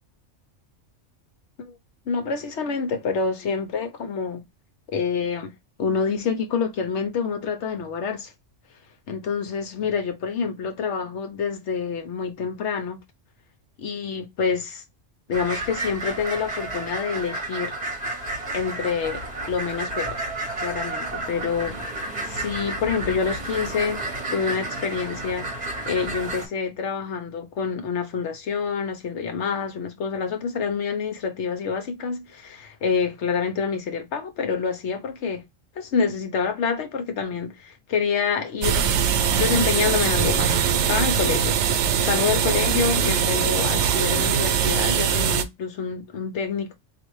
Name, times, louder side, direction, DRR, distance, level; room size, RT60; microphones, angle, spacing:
voice 1, 2.1-4.4 4.9-5.5 5.8-8.3 9.1-13.0 13.8-14.8 15.3-17.8 18.5-20.2 20.6-24.0 24.3-35.4 35.8-39.0 39.4-41.6 42.0-46.7, left 6 dB, 70° left, 1.0 m, -27 dB
sound 1, 15.3-26.5, right 2 dB, 35° right, 1.0 m, -31 dB
sound 2, 38.6-45.4, right 7 dB, 70° right, 0.8 m, -22 dB
4.0 x 2.5 x 3.0 m
omnidirectional pair, 1.3 m